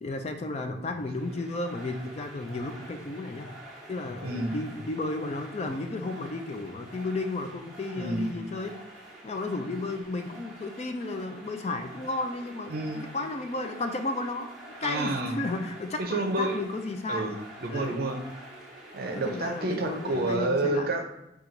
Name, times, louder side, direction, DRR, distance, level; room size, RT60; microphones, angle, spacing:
voice 1, 0.0-3.5 3.9-8.7 9.2-12.8 13.1-14.5 14.8-17.3 17.7-18.0 19.1-20.9, left 2 dB, 35° left, 6 dB, 0.3 m, -33 dB
sound 1, 0.8-20.4, right 1 dB, ahead, 0.9 m, -47 dB
voice 2, 4.2-4.5 7.9-8.3 12.7-13.0 14.8-15.4 16.0-16.6 17.1-18.2 18.9-21.0, right 2 dB, 50° right, 4 dB, 0.6 m, -29 dB
4.5 x 2.4 x 3.8 m, 0.88 s
head